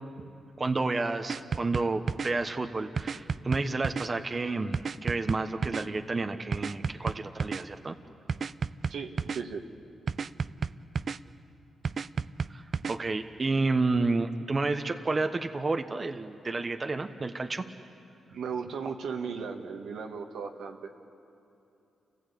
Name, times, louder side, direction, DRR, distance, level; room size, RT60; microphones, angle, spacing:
voice 1, 0.6-8.0 12.5-17.7, right 3 dB, 35° right, 6 dB, 1.1 m, -30 dB
sound 1, 1.3-2.3 3.0-4.1 4.7-5.9 6.5-7.6 8.3-9.4 10.1-11.2 11.9-13.0, right 6 dB, 55° right, 0.5 m, -32 dB
voice 2, 8.9-9.6 18.3-20.8, right 6 dB, 80° right, 3 dB, 1.7 m, -36 dB
29.0 x 15.5 x 8.5 m, 2.8 s
supercardioid pair, 55°, 0 cm